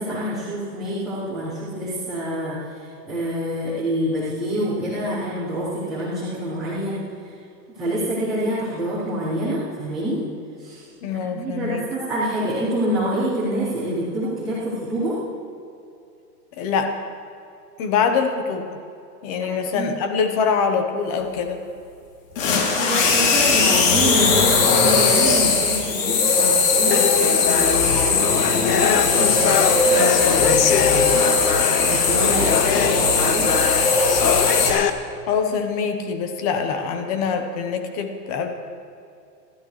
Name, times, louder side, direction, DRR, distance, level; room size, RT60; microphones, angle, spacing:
voice 1, 0.0-7.1 7.8-10.2 10.6-10.8 11.3-15.2 19.4-19.9 22.8-31.4 31.7-33.5, equal, ahead, -15 dB, 0.4 m, -27 dB
voice 2, 11.0-11.8 16.6-16.9 17.8-18.7 19.2-21.6 35.3-38.5, left 6 dB, 20° left, 6 dB, 0.9 m, -24 dB
sound 1, 22.3-34.7, left 4 dB, 50° left, 3.2 m, -19 dB
sound 2, 26.9-34.9, left 8 dB, 70° left, 1.1 m, -24 dB
27.5 x 12.5 x 3.2 m, 2.6 s
hypercardioid pair, 160°, 49 cm